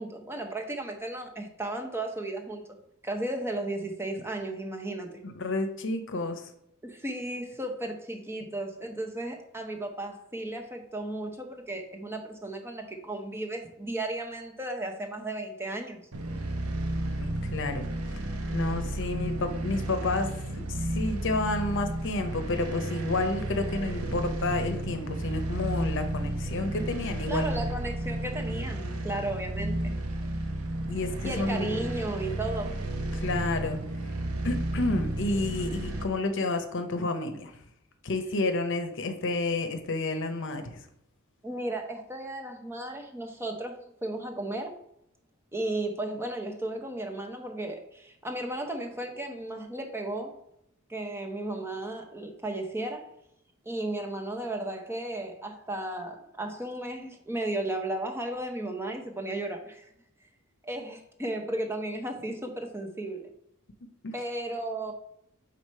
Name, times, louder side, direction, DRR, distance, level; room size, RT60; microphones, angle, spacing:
voice 1, 0.0-2.8 3.0-5.1 6.8-16.1 27.3-29.9 31.2-32.7 41.4-44.8 45.5-50.4 50.9-53.1 53.6-59.9 60.6-63.3 64.1-64.9, right 1 dB, 10° right, 3 dB, 0.7 m, -34 dB
voice 2, 5.2-6.5 17.2-17.9 18.5-27.6 30.9-31.8 33.1-33.8 34.4-37.5 38.0-40.8 64.0-64.2, left 2 dB, 60° left, 7 dB, 0.8 m, -30 dB
sound 1, 16.1-36.0, right 1 dB, 85° right, 1.0 m, -32 dB
4.9 x 4.1 x 5.5 m, 0.74 s
head